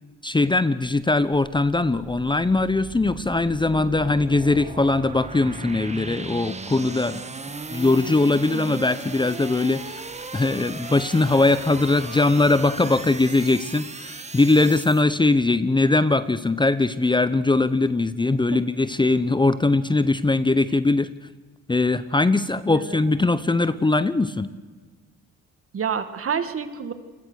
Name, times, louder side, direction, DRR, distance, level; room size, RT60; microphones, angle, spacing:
voice 1, 0.2-7.2 7.7-10.0 10.3-21.1 21.7-24.5, left 2 dB, 15° left, 14 dB, 0.8 m, -21 dB
sound 1, 1.7-15.0, right 3 dB, 20° right, 1.7 m, -37 dB
voice 2, 8.5-8.9 18.5-18.6 22.6-23.1 25.7-26.9, right 7 dB, 50° right, 10 dB, 2.1 m, -29 dB
28.5 x 21.0 x 6.5 m, 1.4 s
cardioid pair, 90°, 30 cm